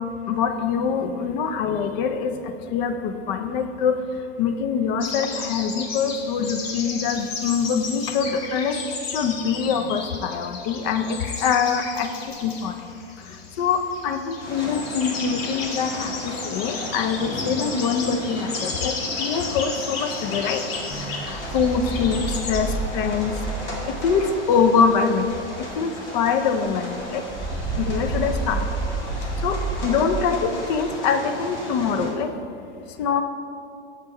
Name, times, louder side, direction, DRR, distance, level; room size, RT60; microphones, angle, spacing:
voice 1, 0.3-2.3 2.7-4.0 4.4-8.8 9.1-12.1 12.4-12.7 13.6-16.1 16.4-20.6 21.3-23.3 24.0-25.3 25.8-27.2 27.8-28.6 29.4-32.3 33.0-33.2, left 6 dB, 40° left, 8 dB, 0.6 m, -24 dB
sound 1, 5.0-22.6, left 4 dB, 60° left, 1.2 m, -34 dB
sound 2, 14.4-32.1, left 1 dB, 80° left, 1.7 m, -36 dB
sound 3, 20.8-25.9 26.2-26.3 26.6-30.9, right 3 dB, 5° left, 1.5 m, -31 dB
6.5 x 5.2 x 5.4 m, 2.5 s
hypercardioid pair, 105°, 35 cm